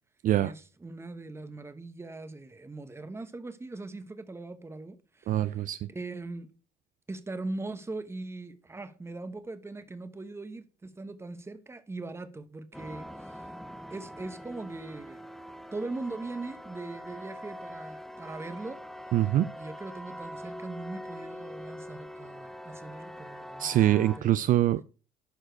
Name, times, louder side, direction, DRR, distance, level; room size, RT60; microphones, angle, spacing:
voice 1, 0.4-5.6 5.9-6.5 7.1-13.4 13.9-15.3 15.7-18.8 19.6-24.5, right 2 dB, 15° right, 1.0 m, -40 dB
voice 2, 5.3-5.9 19.1-19.5 23.6-24.8, right 13 dB, 55° right, 0.4 m, -24 dB
sound 1, 12.7-24.2, equal, ahead, 0.7 m, -43 dB
11.5 x 4.5 x 4.6 m
cardioid pair, 110°, 17 cm